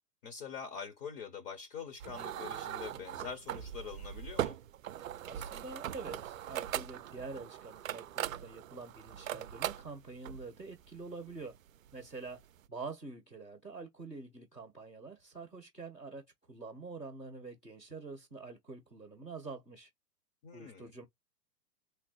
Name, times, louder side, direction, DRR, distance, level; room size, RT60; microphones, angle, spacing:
voice 1, 0.2-4.6 20.4-20.9, left 6 dB, 40° left, 0.8 m, -44 dB
sound 1, 2.0-12.6, right 11 dB, 55° right, 0.5 m, -40 dB
voice 2, 5.2-11.6 11.9-12.4 12.7-19.9 20.5-21.0, right 3 dB, 5° left, 0.3 m, -46 dB
3.8 x 3.0 x 3.0 m
figure-of-eight pair, 110°, 48 cm